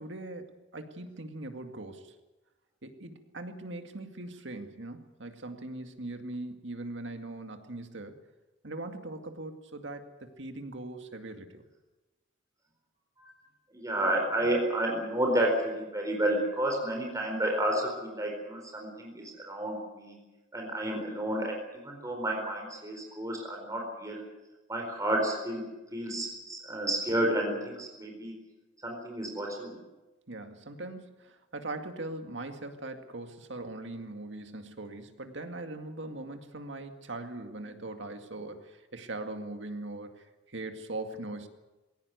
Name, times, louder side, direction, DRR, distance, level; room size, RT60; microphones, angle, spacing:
voice 1, 0.0-2.1 2.8-8.1 8.6-11.6 30.3-40.1 40.5-41.5, right 2 dB, 70° right, 6 dB, 2.2 m, -40 dB
voice 2, 13.7-20.2 20.5-24.2 24.7-28.4 28.8-29.8, right 1 dB, 20° right, 1 dB, 4.4 m, -31 dB
20.5 x 17.5 x 9.5 m, 1.1 s
head